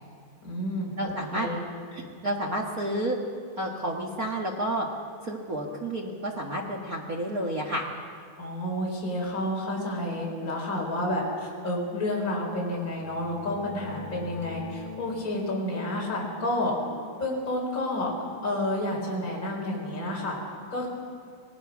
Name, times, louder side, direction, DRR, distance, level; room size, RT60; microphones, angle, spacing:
voice 1, 0.4-1.6 8.4-16.7 17.2-18.1 18.4-20.4 20.7-20.9, left 1 dB, 20° left, -2 dB, 4.7 m, -30 dB
voice 2, 1.0-1.5 1.9-3.2 3.6-4.9 5.2-7.9, right 1 dB, 75° right, -1 dB, 0.8 m, -30 dB
sound 1, 12.7-18.2, left 5 dB, 70° left, 3.7 m, -43 dB
26.0 x 18.5 x 6.1 m, 2.2 s
omnidirectional pair, 4.3 m